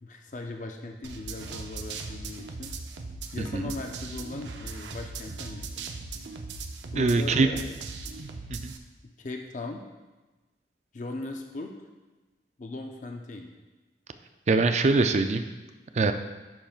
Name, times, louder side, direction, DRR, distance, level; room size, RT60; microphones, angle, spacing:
voice 1, 0.0-2.7 3.3-5.8 6.9-7.7 9.0-9.8 10.9-11.7 12.6-13.5, left 2 dB, 45° left, 3 dB, 0.5 m, -38 dB
sound 1, 1.0-8.8, right 3 dB, 85° right, 0.6 m, -39 dB
voice 2, 3.4-3.7 7.0-7.5 8.5-8.7 14.5-15.4 15.9-16.1, right 3 dB, 40° right, 8 dB, 0.4 m, -23 dB
10.0 x 5.8 x 2.4 m, 1.2 s
head